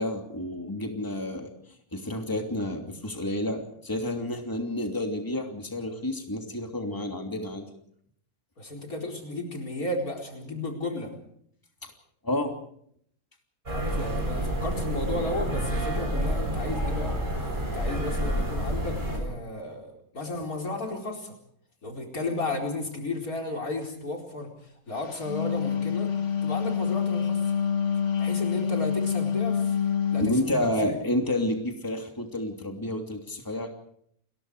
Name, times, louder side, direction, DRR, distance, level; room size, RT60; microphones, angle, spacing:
voice 1, 0.0-1.5 1.9-7.7 11.8-11.9 12.2-12.5 30.2-33.7, left 1 dB, 15° left, 3 dB, 3.0 m, -30 dB
voice 2, 8.6-11.1 13.7-17.2 17.5-21.3 21.8-24.5 24.9-26.1 26.4-27.5 28.2-29.8 30.1-31.0, left 2 dB, 80° left, 2 dB, 5.0 m, -33 dB
sound 1, 13.7-19.2, equal, 35° right, 7.6 m, -29 dB
Wind instrument woodwind instrument, 25.1-30.4, left 7 dB, 55° left, 1.8 m, -27 dB
30.0 x 21.5 x 4.9 m, 0.66 s
omnidirectional pair, 1.5 m